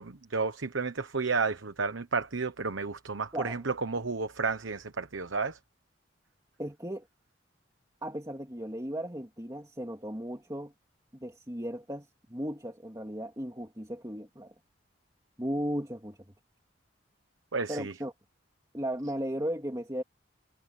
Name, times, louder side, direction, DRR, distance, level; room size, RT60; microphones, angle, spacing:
voice 1, 0.0-5.6 17.5-17.9, right 4 dB, 90° right, 1.1 m, -32 dB
voice 2, 6.6-7.0 8.0-10.7 11.2-14.5 15.4-16.2 17.7-18.1 18.7-20.0, equal, 20° right, 2.5 m, -36 dB
head